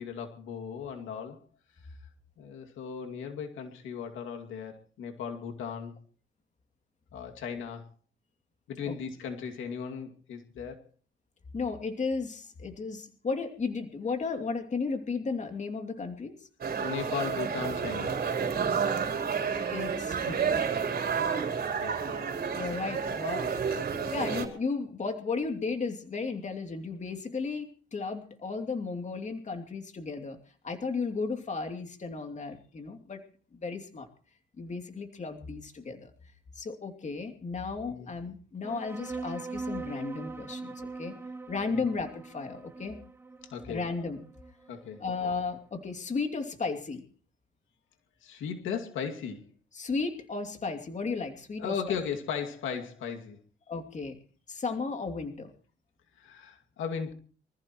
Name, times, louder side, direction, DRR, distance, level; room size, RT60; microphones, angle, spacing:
voice 1, 0.0-1.5 2.4-5.9 7.1-7.9 8.7-10.8 16.8-18.2 21.8-22.5 23.1-23.3 23.7-23.8 37.9-38.1 41.7-41.9 43.4-43.8 44.7-45.0 48.2-49.4 51.6-53.4 56.2-57.1, left 6 dB, 80° left, 4 dB, 2.4 m, -37 dB
voice 2, 11.5-16.5 19.7-20.6 22.5-23.6 24.1-30.4 30.6-33.2 33.5-34.1 34.6-36.1 36.5-41.1 41.5-43.0 43.7-44.2 45.0-47.0 49.7-52.0 53.7-54.2 54.5-55.5, left 4 dB, 35° left, 5 dB, 2.7 m, -34 dB
sound 1, 16.6-24.5, right 6 dB, 50° right, 4.3 m, -30 dB
sound 2, 38.6-45.6, right 3 dB, 10° right, 1.9 m, -42 dB
25.5 x 15.0 x 3.1 m, 0.40 s
cardioid pair, 90°, 20 cm